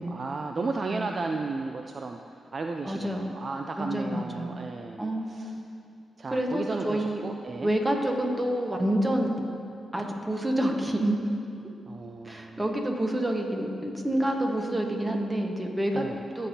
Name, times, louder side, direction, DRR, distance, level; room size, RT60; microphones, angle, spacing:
voice 1, 0.0-2.2 2.5-5.5 6.2-7.7 11.9-12.6 15.9-16.2, right 3 dB, 50° right, 3 dB, 0.4 m, -34 dB
voice 2, 2.8-3.3 3.8-4.7 5.0-5.6 6.3-7.2 7.6-9.3 9.9-11.2 12.2-16.1 16.3-16.5, right 1 dB, 20° right, 2 dB, 1.3 m, -28 dB
16.0 x 5.3 x 2.8 m, 2.5 s
cardioid pair, 65°, 0 cm